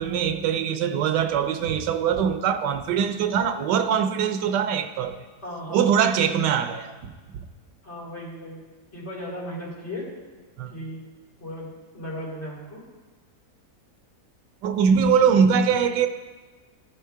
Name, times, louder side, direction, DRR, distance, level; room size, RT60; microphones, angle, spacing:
voice 1, 0.0-5.1 5.7-7.4 10.6-10.7 14.6-16.1, right 7 dB, 85° right, 1.3 m, -22 dB
voice 2, 5.4-5.8 7.8-8.6 8.9-10.1 10.7-11.0 11.4-12.8, equal, 40° left, 3.6 m, -36 dB
14.0 x 4.7 x 4.5 m
omnidirectional pair, 1.8 m